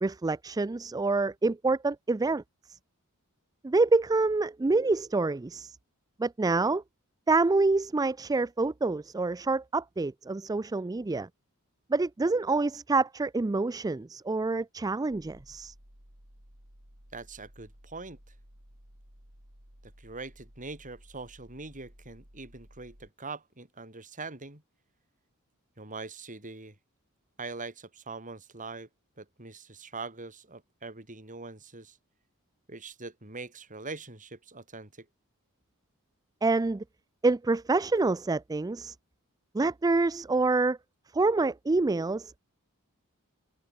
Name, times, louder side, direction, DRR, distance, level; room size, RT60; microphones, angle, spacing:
voice 1, 0.0-2.4 2.7-2.8 3.6-5.8 6.2-6.8 7.3-11.3 11.9-15.7 36.4-36.8 37.2-38.9 39.5-40.8 41.1-42.4, right 3 dB, 15° right, 0.4 m, -27 dB
sound 1, 15.1-23.1, equal, 65° right, 7.4 m, -55 dB
voice 2, 17.1-18.2 20.0-24.6 25.8-26.8 27.4-28.9 29.2-32.0 32.7-35.1, right 3 dB, 35° right, 4.1 m, -42 dB
head